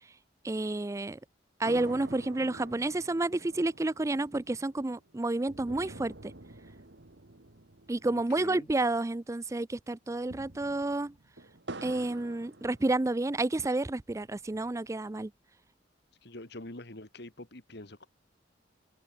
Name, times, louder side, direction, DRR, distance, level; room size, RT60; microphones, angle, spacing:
voice 1, 0.4-1.2 1.6-6.3 7.9-11.1 11.8-15.3, right 2 dB, 15° right, 0.4 m, -30 dB
sound 1, 1.7-9.3 9.5-9.6 10.1-13.4 13.9-14.9, right 2 dB, 65° right, 1.9 m, -48 dB
voice 2, 8.1-8.7 16.2-18.1, left 1 dB, 60° left, 2.5 m, -45 dB
head